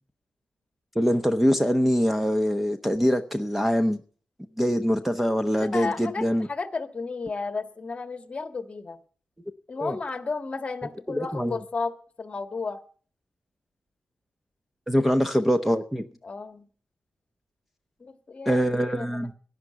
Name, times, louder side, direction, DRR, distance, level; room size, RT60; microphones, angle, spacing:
voice 1, 0.9-4.0 4.6-6.5 9.8-10.0 11.1-11.5 14.9-16.0 18.5-19.3, equal, 5° right, 9 dB, 0.9 m, -23 dB
voice 2, 5.7-6.2 6.5-9.0 9.7-11.9 12.2-12.8 15.0-15.2 16.2-16.7 18.0-19.3, left 4 dB, 35° left, 10 dB, 1.6 m, -33 dB
11.0 x 11.0 x 6.8 m, 0.42 s
wide cardioid pair, 120°, 3 cm